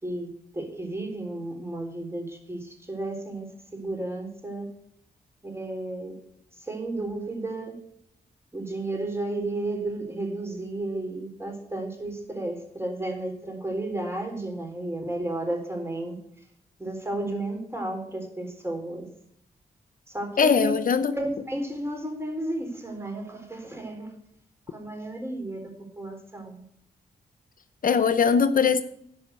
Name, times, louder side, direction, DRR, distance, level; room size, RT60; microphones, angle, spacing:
voice 1, 0.0-4.7 5.4-6.2 6.5-7.8 8.5-16.5 16.8-19.1 20.1-20.7 21.1-24.2 24.7-26.6, right 1 dB, 15° right, 4.0 m, -33 dB
voice 2, 20.4-21.1 27.8-28.8, left 6 dB, 60° left, 0.7 m, -21 dB
11.5 x 5.4 x 8.0 m
cardioid pair, 60°, 16 cm